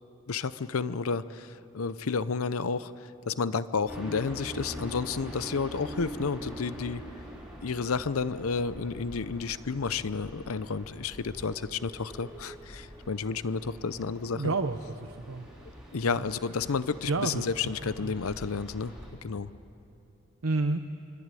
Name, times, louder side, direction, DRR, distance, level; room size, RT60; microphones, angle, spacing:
voice 1, 0.3-7.0 7.6-14.5 15.9-18.9 19.2-19.5, left 5 dB, 85° left, 14 dB, 0.7 m, -31 dB
sound 1, 3.9-19.1, equal, 5° right, 5.4 m, -44 dB
voice 2, 14.3-15.5 16.1-16.2 17.1-18.1 20.4-20.8, right 3 dB, 75° right, 7 dB, 0.8 m, -31 dB
25.5 x 24.5 x 9.1 m, 2.8 s
head